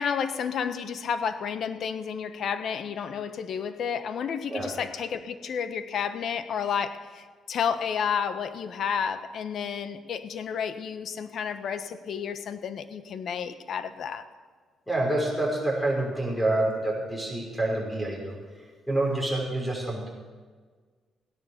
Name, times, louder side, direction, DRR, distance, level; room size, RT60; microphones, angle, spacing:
voice 1, 0.0-14.2, left 7 dB, 65° left, 11 dB, 1.1 m, -31 dB
voice 2, 14.9-18.4 18.9-20.1, right 2 dB, 5° left, -1 dB, 6.0 m, -27 dB
16.5 x 10.5 x 6.7 m, 1.5 s
cardioid pair, 90°, 0 cm